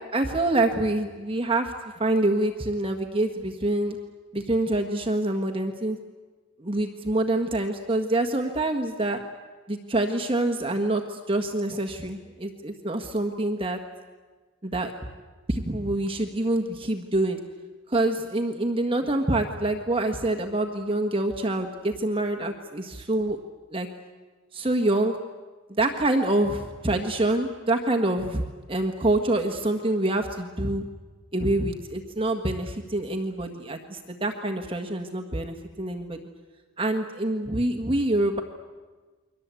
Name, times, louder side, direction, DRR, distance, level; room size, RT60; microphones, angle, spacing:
voice 1, 0.1-4.0 4.3-6.0 6.6-9.2 9.7-13.8 14.6-14.9 15.5-17.4 17.9-23.4 23.7-23.9 24.5-25.2 25.7-30.8 31.3-36.2 36.8-38.4, right 2 dB, 25° right, 4 dB, 1.5 m, -26 dB
29.0 x 23.0 x 8.4 m, 1.3 s
head